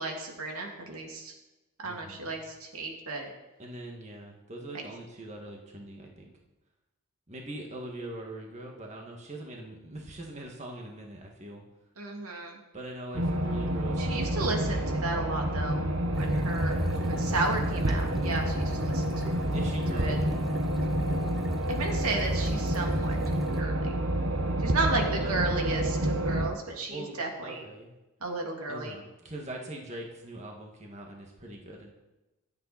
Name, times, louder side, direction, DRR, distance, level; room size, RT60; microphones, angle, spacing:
voice 1, 0.0-1.3 1.8-3.3 12.0-12.6 14.0-15.8 16.1-19.3 19.9-20.2 21.7-23.2 23.5-24.0 24.6-27.6 28.2-29.0, right 2 dB, 80° right, 1 dB, 2.8 m, -33 dB
voice 2, 1.8-2.3 3.6-6.3 7.3-11.6 12.7-14.8 16.9-17.3 19.3-20.3 25.2-25.8 26.9-27.2 27.4-27.9 28.7-31.9, right 1 dB, 30° right, 0 dB, 2.1 m, -42 dB
sound 1, 13.1-26.5, right 1 dB, 60° right, 1.4 m, -29 dB
sound 2, 16.1-23.6, equal, ahead, 1.0 m, -37 dB
25.0 x 9.1 x 4.4 m, 1.0 s
head